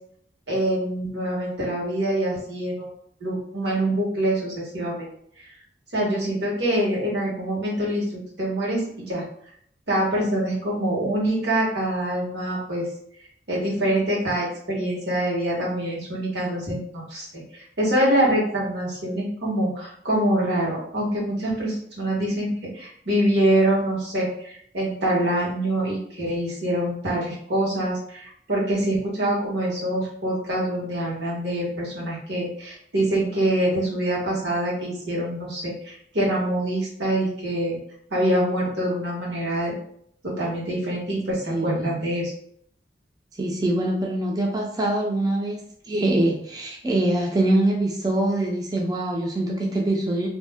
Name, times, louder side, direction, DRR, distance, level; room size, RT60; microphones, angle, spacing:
voice 1, 0.5-2.9 3.2-5.1 5.9-9.2 9.9-12.9 13.5-17.4 17.8-37.8 38.1-39.7 40.2-42.3, right 1 dB, 85° right, -5 dB, 1.2 m, -25 dB
voice 2, 41.4-41.8 43.4-45.6 45.9-50.3, right 1 dB, 20° right, -1 dB, 0.3 m, -23 dB
2.5 x 2.1 x 3.4 m, 0.66 s
head